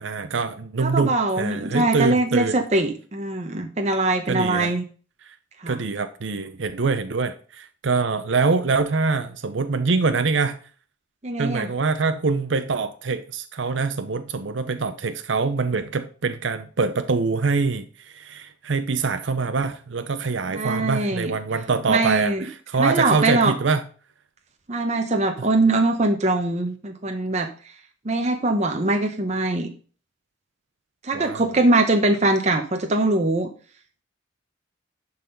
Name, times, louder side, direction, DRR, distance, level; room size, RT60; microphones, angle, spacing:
voice 1, 0.0-2.6 4.3-4.7 5.2-5.3 5.7-10.6 11.4-23.8 31.1-31.5, right 4 dB, 70° right, 9 dB, 0.6 m, -24 dB
voice 2, 0.8-4.8 5.6-5.8 11.2-11.7 20.5-21.3 21.9-22.5 22.8-23.5 24.7-27.5 28.0-29.7 31.0-33.5, right 2 dB, 35° right, 4 dB, 0.8 m, -22 dB
11.0 x 4.1 x 5.2 m, 0.40 s
head